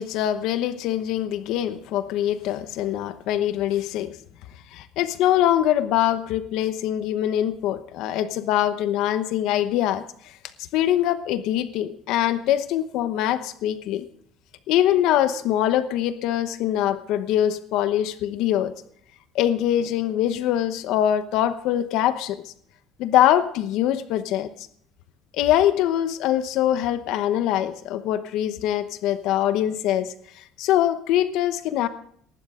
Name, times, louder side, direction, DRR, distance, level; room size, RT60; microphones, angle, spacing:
voice 1, 0.0-4.2 4.7-10.0 10.7-14.0 14.7-18.7 19.3-22.4 23.0-24.7 25.4-31.9, left 11 dB, 65° left, 11 dB, 1.0 m, -23 dB
22.0 x 12.0 x 3.7 m, 0.65 s
cardioid pair, 160°, 0 cm